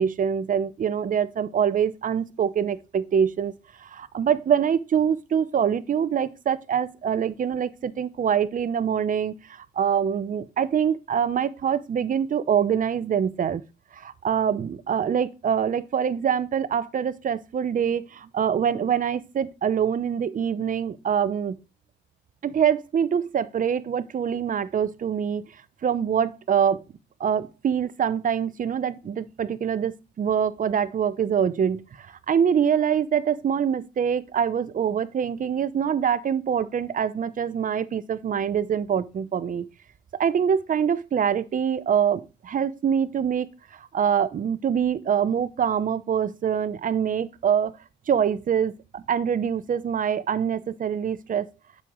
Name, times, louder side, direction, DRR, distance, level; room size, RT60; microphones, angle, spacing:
voice 1, 0.0-3.5 3.8-13.6 13.9-21.6 22.4-25.5 25.8-26.8 27.2-39.7 40.1-47.7 48.1-51.5, right 8 dB, 40° right, 0.6 m, -25 dB
7.6 x 6.3 x 3.1 m
cardioid pair, 90°, 20 cm